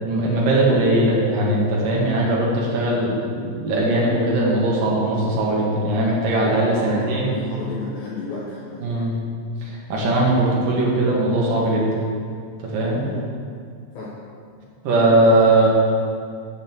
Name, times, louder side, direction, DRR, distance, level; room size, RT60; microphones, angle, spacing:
voice 1, 0.0-7.4 8.8-9.2 9.6-11.9 12.6-13.0 14.8-15.7, right 1 dB, 60° right, -4 dB, 2.4 m, -20 dB
voice 2, 6.7-9.1 13.0-13.2 13.9-14.2, left 4 dB, 90° left, -5 dB, 1.9 m, -33 dB
8.1 x 6.5 x 7.6 m, 2.2 s
omnidirectional pair, 5.8 m